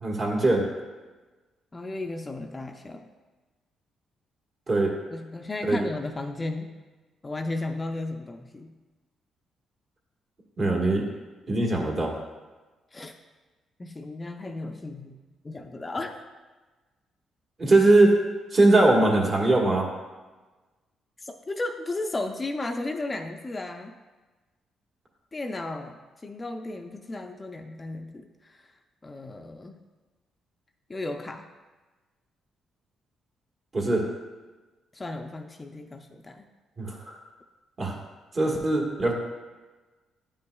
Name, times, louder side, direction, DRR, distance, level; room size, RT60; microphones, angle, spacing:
voice 1, 0.0-0.7 4.7-4.9 5.6-5.8 10.6-11.0 11.5-12.1 17.6-18.2 18.5-19.9 33.7-34.1 36.8-37.2 37.8-38.0 38.3-39.1, right 2 dB, 40° right, -2 dB, 1.4 m, -21 dB
voice 2, 1.7-3.1 5.1-6.7 7.2-8.7 12.9-13.1 13.8-15.2 15.4-16.2 21.2-23.9 25.3-28.7 29.0-29.8 30.9-31.4 34.9-36.5, left 2 dB, 25° left, 5 dB, 0.4 m, -34 dB
9.7 x 5.5 x 2.3 m, 1.2 s
cardioid pair, 90°, 0 cm